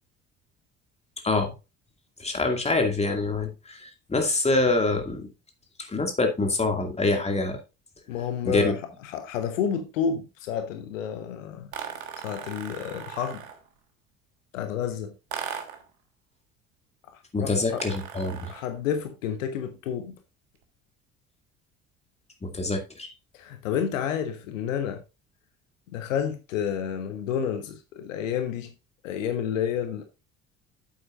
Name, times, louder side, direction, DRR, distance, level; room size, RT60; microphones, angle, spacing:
voice 1, 2.2-3.5 4.1-5.3 5.9-7.6 8.5-8.7 17.3-18.5 22.4-23.1, left 2 dB, 15° left, 2.3 m, -25 dB
voice 2, 8.1-11.7 12.2-13.4 14.5-15.1 17.1-17.8 18.5-20.2 23.3-25.0 25.9-28.7 29.0-30.0, left 8 dB, 70° left, 1.1 m, -30 dB
sound 1, 11.7-13.7 15.3-15.9 17.7-18.7, right 8 dB, 70° right, 1.4 m, -38 dB
9.5 x 7.9 x 2.5 m
figure-of-eight pair, 55°, 40 cm